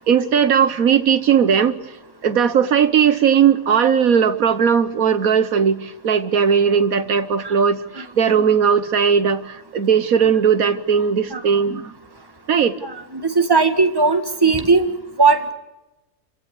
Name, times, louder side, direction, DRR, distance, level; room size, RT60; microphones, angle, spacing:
voice 1, 0.1-1.8 2.2-11.9 12.5-12.8, right 7 dB, 80° right, 12 dB, 1.6 m, -17 dB
voice 2, 12.8-14.9 15.2-15.5, right 4 dB, 15° right, 6 dB, 1.9 m, -17 dB
28.5 x 16.0 x 8.4 m, 0.97 s
omnidirectional pair, 1.5 m